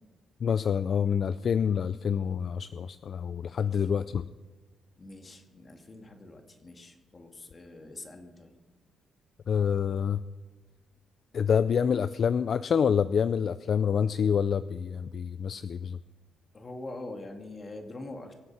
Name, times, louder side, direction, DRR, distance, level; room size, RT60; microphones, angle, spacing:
voice 1, 0.4-4.2 9.5-10.2 11.3-16.0, left 7 dB, 55° left, 14 dB, 0.4 m, -27 dB
voice 2, 3.3-4.1 5.0-8.5 16.5-18.3, left 2 dB, 30° left, 4 dB, 2.3 m, -44 dB
23.5 x 7.9 x 6.3 m, 1.3 s
cardioid pair, 90°, 0 cm